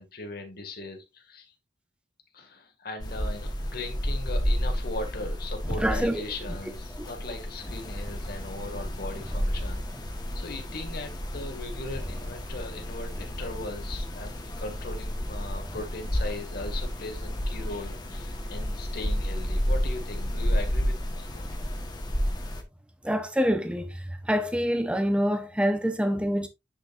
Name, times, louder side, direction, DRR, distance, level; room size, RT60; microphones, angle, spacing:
voice 1, 0.0-1.5 2.3-21.4, left 2 dB, 55° left, 2.1 m, -39 dB
sound 1, 3.0-22.6, equal, 25° left, 1.3 m, -31 dB
voice 2, 5.8-6.2 23.0-23.9 24.3-26.5, equal, 5° right, 1.0 m, -25 dB
10.0 x 5.2 x 2.6 m
head